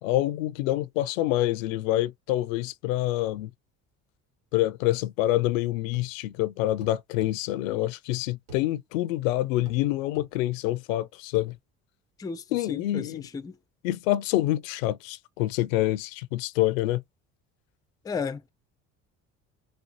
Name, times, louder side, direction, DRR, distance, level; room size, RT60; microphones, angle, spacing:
voice 1, 0.0-3.5 4.5-11.6 12.5-13.2 13.8-17.0, left 15 dB, 85° left, 0.5 m, -26 dB
sound 1, 5.9-6.1 6.8-7.4 8.5-8.7 9.6-9.8 10.1-10.3 11.3-11.5, right 5 dB, 90° right, 1.5 m, -47 dB
voice 2, 12.2-13.6 18.0-18.5, left 5 dB, 10° left, 0.3 m, -34 dB
4.2 x 2.0 x 2.6 m
hypercardioid pair, 65°, 39 cm